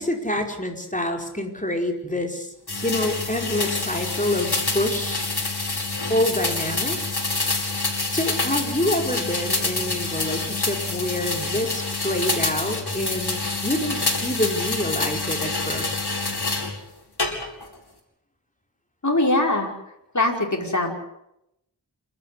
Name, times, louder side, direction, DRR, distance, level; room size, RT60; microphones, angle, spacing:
voice 1, 0.0-2.5 2.8-5.3 6.1-7.2 8.1-16.0, left 1 dB, 20° left, 3 dB, 5.3 m, -27 dB
sound 1, 2.7-16.7 17.2-17.7, left 3 dB, 65° left, 5.4 m, -27 dB
voice 2, 19.0-19.7 20.1-20.9, left 2 dB, 45° left, 1 dB, 5.5 m, -21 dB
29.0 x 13.0 x 9.9 m, 0.82 s
wide cardioid pair, 45°, 41 cm